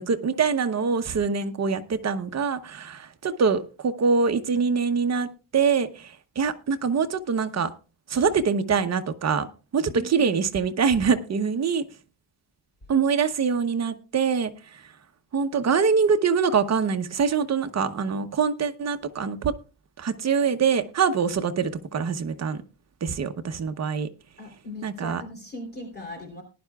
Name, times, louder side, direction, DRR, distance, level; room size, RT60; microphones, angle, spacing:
voice 1, 0.0-5.3 5.5-5.9 6.4-7.7 8.1-9.5 9.7-11.8 12.9-14.5 15.3-19.5 20.0-22.6 23.0-24.1 24.8-25.2, right 5 dB, 40° right, 8 dB, 0.8 m, -24 dB
voice 2, 9.9-10.4 24.4-26.4, left 1 dB, 20° left, 1 dB, 3.2 m, -39 dB
19.5 x 11.0 x 2.3 m, 0.33 s
wide cardioid pair, 165°, 43 cm